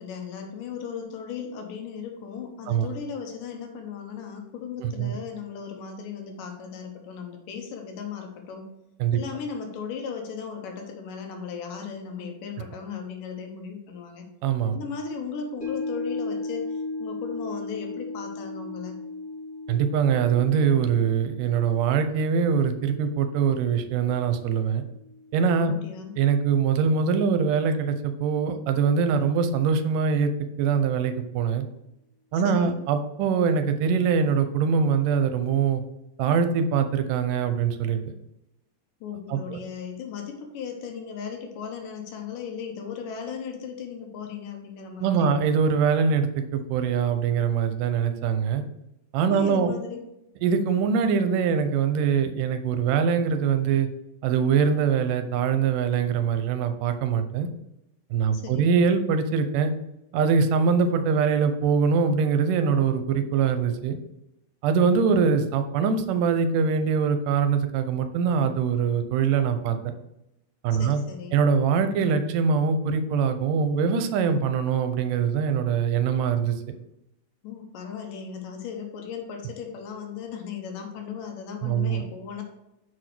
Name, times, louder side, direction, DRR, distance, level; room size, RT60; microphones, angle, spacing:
voice 1, 0.0-8.7 9.1-14.2 14.7-19.0 25.7-26.1 32.3-32.8 39.0-45.4 49.3-50.0 58.3-58.7 70.7-71.4 77.4-82.4, left 6 dB, 80° left, 3 dB, 2.6 m, -36 dB
voice 2, 4.8-5.1 9.0-9.2 14.4-14.8 19.7-24.8 25.3-25.7 26.2-30.3 30.6-31.7 32.3-35.8 36.2-38.0 39.3-39.6 45.0-48.6 49.1-49.7 50.4-53.9 54.2-57.5 58.1-59.7 60.1-64.0 64.6-69.9 70.6-71.0 71.3-76.6 81.6-82.0, right 6 dB, 85° right, 9 dB, 2.3 m, -23 dB
sound 1, 15.6-26.0 26.3-26.4, left 3 dB, 30° left, 1.3 m, -37 dB
6.2 x 5.0 x 5.9 m, 0.87 s
omnidirectional pair, 3.7 m